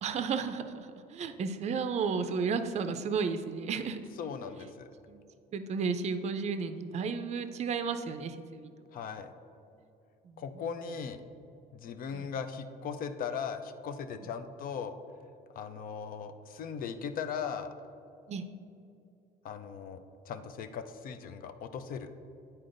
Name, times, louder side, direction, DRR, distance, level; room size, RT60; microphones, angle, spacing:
voice 1, 0.0-4.0 5.1-5.2 5.5-8.7 10.2-10.4 12.1-12.3 14.2-14.3 18.3-18.4, right 5 dB, 40° right, 9 dB, 0.4 m, -33 dB
voice 2, 4.2-4.9 8.9-9.3 10.4-11.2 11.7-14.9 15.6-17.7 19.4-22.1, left 6 dB, 55° left, 9 dB, 0.5 m, -38 dB
9.4 x 4.3 x 2.6 m, 2.6 s
cardioid pair, 110°, 17 cm